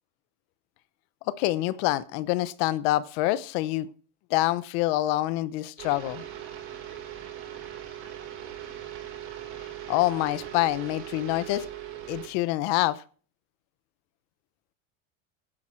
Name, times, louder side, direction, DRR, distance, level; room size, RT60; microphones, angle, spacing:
voice 1, 1.3-3.9 4.3-6.2 9.9-11.7 12.1-13.0, left 16 dB, 60° left, 17 dB, 1.0 m, -26 dB
sound 1, 5.8-12.3, right 11 dB, 65° right, 4.9 m, -40 dB
16.5 x 10.0 x 4.5 m, 0.41 s
cardioid pair, 175°, 36 cm